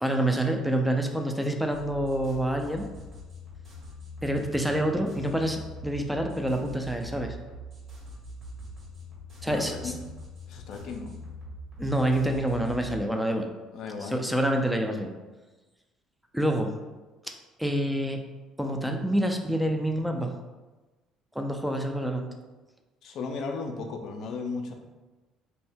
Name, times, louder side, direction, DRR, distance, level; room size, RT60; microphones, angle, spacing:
voice 1, 0.0-2.9 4.2-7.4 9.4-9.9 11.8-13.5 14.0-15.1 16.3-16.7 17.2-17.3 17.6-18.2 18.6-20.3 21.4-22.3, right 1 dB, 5° right, 4 dB, 0.4 m, -27 dB
sound 1, 1.7-13.0, left 1 dB, 45° right, 1.4 m, -43 dB
voice 2, 9.4-10.0 10.5-11.2 13.7-14.2 23.0-24.7, left 4 dB, 60° left, 4 dB, 0.4 m, -35 dB
2.6 x 2.0 x 3.5 m, 1.2 s
hypercardioid pair, 65°, 0 cm